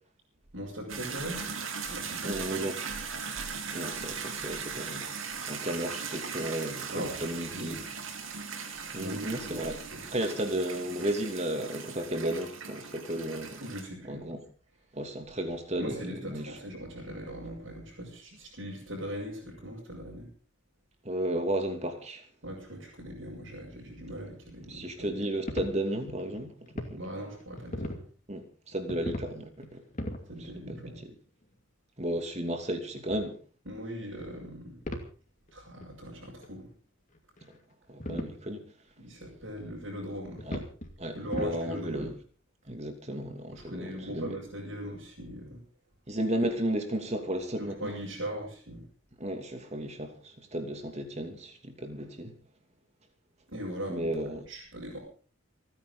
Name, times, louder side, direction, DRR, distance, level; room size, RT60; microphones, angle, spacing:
voice 1, 0.5-1.5 1.9-2.7 6.9-7.2 7.5-8.1 9.0-9.6 9.9-10.0 13.6-14.3 15.8-20.3 22.4-25.1 27.0-28.0 30.3-31.0 33.7-34.8 35.5-36.7 39.0-40.5 41.1-42.1 43.5-45.6 47.5-48.8 53.5-54.2 54.5-55.0, equal, 60° right, 6.9 m, -40 dB
sound 1, 0.9-13.8, right 5 dB, 75° right, 2.9 m, -39 dB
voice 2, 2.2-2.8 3.7-5.1 5.4-7.8 8.9-9.7 10.1-13.6 14.0-14.4 14.9-16.5 21.0-22.2 24.7-26.5 26.9-27.0 28.3-29.8 30.7-30.9 32.0-33.4 37.9-38.6 40.5-40.6 41.0-42.1 42.7-44.3 46.1-47.9 49.2-52.4 53.9-54.4, right 1 dB, 35° right, 2.7 m, -33 dB
sound 2, 25.5-26.9 27.3-28.1 28.7-29.3 29.6-30.2 30.7-30.8 32.0-32.1 33.1-33.2 34.2-34.4 34.8-35.1 35.5-35.6 35.8-35.9 36.4-36.5 37.2-37.5 38.0-38.4 39.0-39.1 39.6-39.7 40.4-40.9 41.2-41.6 41.9-42.1, left 1 dB, 40° left, 2.4 m, -38 dB
29.5 x 10.0 x 4.0 m
head